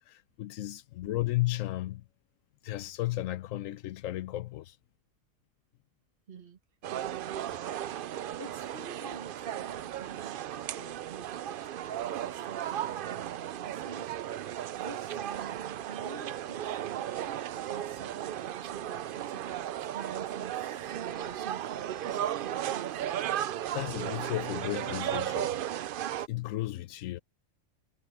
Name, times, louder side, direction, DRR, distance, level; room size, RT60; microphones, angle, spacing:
voice 1, 0.1-2.0 2.6-4.7 23.7-25.6 26.3-27.2, left 16 dB, 90° left, 1.0 m, -34 dB
voice 2, 6.3-6.6 6.9-14.1 14.5-23.0, right 5 dB, 45° right, 1.9 m, -48 dB
sound 1, 6.8-26.3, right 11 dB, 65° right, 0.5 m, -35 dB
omnidirectional pair, 1.3 m